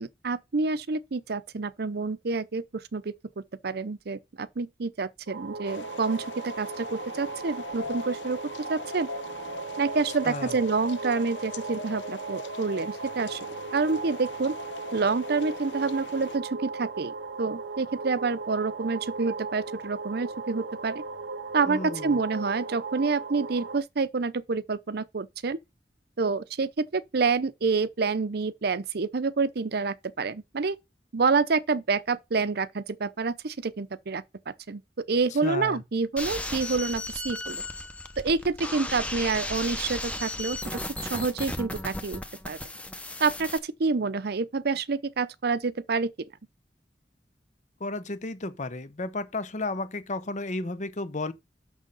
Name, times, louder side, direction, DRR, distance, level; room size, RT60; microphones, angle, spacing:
voice 1, 0.0-8.4 8.7-9.1 9.8-13.4 13.7-14.5 14.9-21.0 21.5-25.6 26.2-30.8 31.1-34.2 34.7-34.8 35.1-37.6 38.2-40.8 41.1-42.6 43.2-46.1, right 4 dB, 65° right, 0.6 m, -28 dB
sound 1, 5.3-23.8, right 4 dB, 90° right, 0.8 m, -37 dB
sound 2, 5.6-16.4, left 4 dB, 80° left, 0.7 m, -42 dB
voice 2, 21.7-22.2 35.4-35.8 47.8-51.3, left 2 dB, 45° left, 0.8 m, -33 dB
sound 3, 36.2-43.6, left 1 dB, 10° left, 0.8 m, -35 dB
6.3 x 6.3 x 5.5 m
head